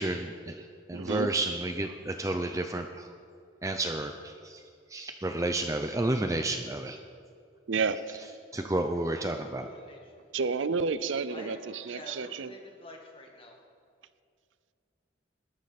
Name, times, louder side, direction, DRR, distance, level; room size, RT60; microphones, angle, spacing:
voice 1, 0.0-3.1 3.6-4.6 4.9-7.0 8.5-9.7, right 2 dB, 15° right, 6 dB, 0.5 m, -31 dB
voice 2, 0.9-1.3 7.7-8.0 10.3-12.5, right 4 dB, 80° right, 14 dB, 0.6 m, -30 dB
voice 3, 9.4-10.0 11.3-13.6, left 1 dB, 30° left, 1 dB, 1.8 m, -48 dB
20.0 x 11.5 x 4.2 m, 2.3 s
head